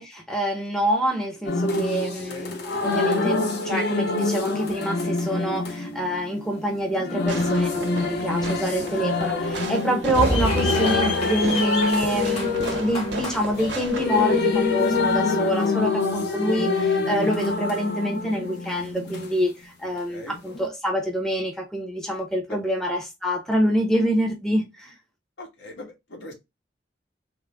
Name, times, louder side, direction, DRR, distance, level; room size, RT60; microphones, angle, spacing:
voice 1, 0.0-24.9, equal, 5° left, 0.6 m, -26 dB
sound 1, 1.5-19.3 20.5-20.7, left 3 dB, 65° left, 0.7 m, -26 dB
voice 2, 2.3-2.6 10.4-10.5 15.6-15.8 20.1-20.4 22.5-22.6 25.4-26.3, left 1 dB, 80° left, 1.2 m, -39 dB
Fireworks, 7.3-14.7, right 3 dB, 70° right, 0.7 m, -36 dB
sound 2, 10.1-15.2, left 1 dB, 35° left, 0.9 m, -29 dB
3.6 x 2.0 x 3.4 m
head